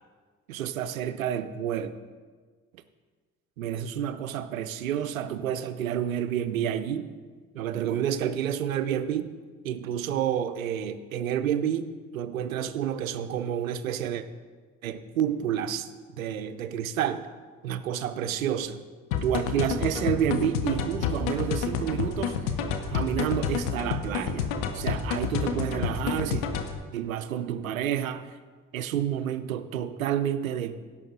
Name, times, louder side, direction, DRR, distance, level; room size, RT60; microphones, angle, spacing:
voice 1, 0.5-1.9 3.6-7.1 7.5-9.3 9.6-14.2 14.8-15.9 16.2-17.2 17.6-18.8 19.2-22.4 22.9-26.5 26.9-28.3 28.7-30.8, right 9 dB, 90° right, 12 dB, 0.5 m, -29 dB
sound 1, 19.1-26.8, left 7 dB, 75° left, 0.9 m, -29 dB
16.5 x 6.6 x 3.8 m, 1.5 s
figure-of-eight pair, 45°, 40 cm